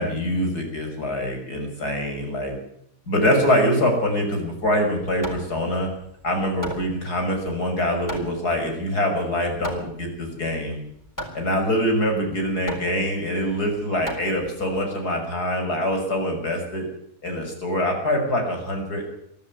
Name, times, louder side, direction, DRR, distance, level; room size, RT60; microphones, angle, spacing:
voice 1, 0.0-2.5 3.1-5.9 6.2-10.8 11.3-16.9 17.2-19.1, equal, 75° left, 3 dB, 6.9 m, -24 dB
Hammer, 4.6-14.9, equal, 10° left, 4.1 m, -38 dB
23.0 x 14.0 x 9.7 m, 0.75 s
omnidirectional pair, 1.7 m